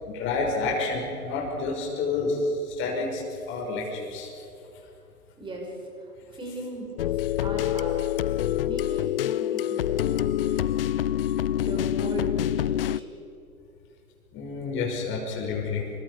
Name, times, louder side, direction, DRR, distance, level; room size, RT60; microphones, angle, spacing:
voice 1, 0.1-4.3 14.3-16.0, left 3 dB, 25° left, -1 dB, 5.9 m, -29 dB
voice 2, 5.4-11.1 11.5-13.1, right 1 dB, 10° right, 0 dB, 5.9 m, -38 dB
sound 1, 7.0-13.0, left 12 dB, 40° left, 0.4 m, -26 dB
27.5 x 25.0 x 5.1 m, 2.7 s
hypercardioid pair, 125°, 45 cm